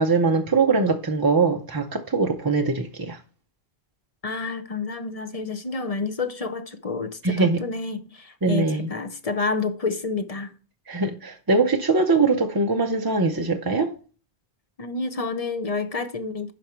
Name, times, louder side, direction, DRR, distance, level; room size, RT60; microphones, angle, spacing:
voice 1, 0.0-3.2 7.2-7.6 8.4-8.9 10.9-13.9, right 3 dB, 25° right, 0.5 m, -22 dB
voice 2, 4.2-10.5 14.8-16.5, left 4 dB, 35° left, 0.9 m, -29 dB
11.0 x 5.0 x 4.5 m
omnidirectional pair, 1.1 m